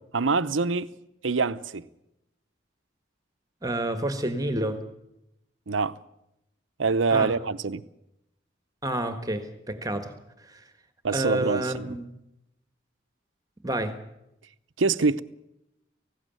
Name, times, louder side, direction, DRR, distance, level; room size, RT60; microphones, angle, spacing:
voice 1, 0.1-0.9 1.2-1.9 5.7-6.0 6.8-7.8 11.0-11.9 14.8-15.2, right 4 dB, 90° right, 0.8 m, -25 dB
voice 2, 3.6-4.8 7.1-7.3 8.8-10.1 10.4-10.6 11.1-12.1 13.6-14.0, right 1 dB, 20° right, 1.5 m, -29 dB
18.5 x 16.5 x 9.1 m
head